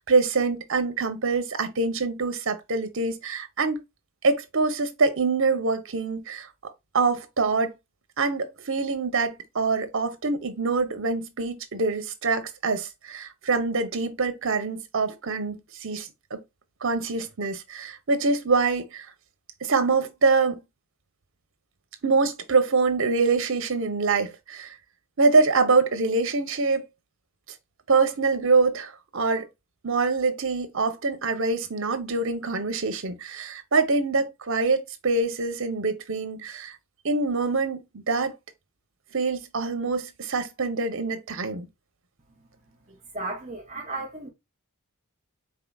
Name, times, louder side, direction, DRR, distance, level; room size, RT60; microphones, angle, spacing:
voice 1, 0.0-3.8 4.2-6.5 6.9-7.7 8.2-16.4 16.8-19.1 19.6-20.6 22.0-24.7 25.2-26.9 27.9-29.5 29.8-36.7 37.0-38.3 39.1-41.7, right 4 dB, 65° right, 0.8 m, -25 dB
voice 2, 42.9-44.3, right 2 dB, 35° right, 0.9 m, -35 dB
4.7 x 3.8 x 2.3 m
head